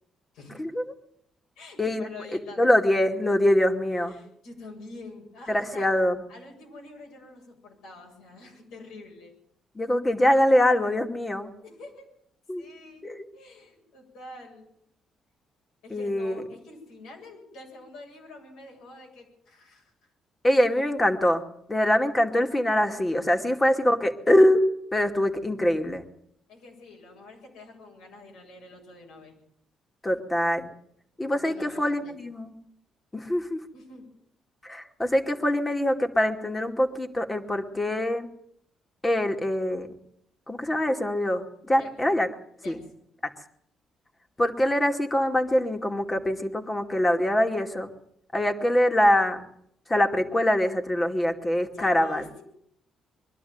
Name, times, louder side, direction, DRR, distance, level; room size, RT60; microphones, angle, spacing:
voice 1, 1.6-2.6 3.9-6.0 6.3-9.3 11.6-12.0 12.6-13.1 13.3-14.7 15.8-19.9 23.2-23.7 26.5-29.4 31.3-32.2 33.7-34.1 41.8-41.9 42.6-42.9 51.7-52.4, left 2 dB, 90° left, 0 dB, 7.6 m, -46 dB
voice 2, 2.6-4.1 5.5-6.2 9.7-11.5 12.5-12.6 13.0-13.2 15.9-16.4 20.4-21.4 21.7-24.6 24.9-26.0 30.0-30.7 31.2-32.5 33.1-33.6 34.6-38.3 39.0-39.9 40.5-42.3 42.7-42.8 43.2-43.3 44.4-47.9 48.3-49.5 49.9-52.2, left 1 dB, 20° left, 5 dB, 2.4 m, -24 dB
22.5 x 12.0 x 9.5 m, 0.74 s
cardioid pair, 90°, 0 cm